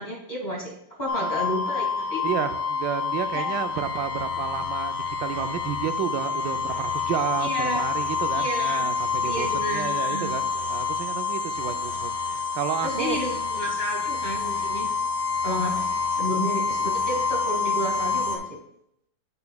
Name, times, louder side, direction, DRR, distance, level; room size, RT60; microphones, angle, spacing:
voice 1, 0.0-2.2 3.3-3.5 7.4-7.9 8.3-8.9 9.2-10.3 12.8-14.9 15.4-15.8 16.1-18.6, equal, 25° left, -1 dB, 1.3 m, -31 dB
sound 1, 1.1-18.4, left 5 dB, 80° left, 1.6 m, -27 dB
voice 2, 2.2-13.2, right 10 dB, 75° right, 8 dB, 1.1 m, -31 dB
8.7 x 6.8 x 2.2 m, 0.76 s
omnidirectional pair, 2.3 m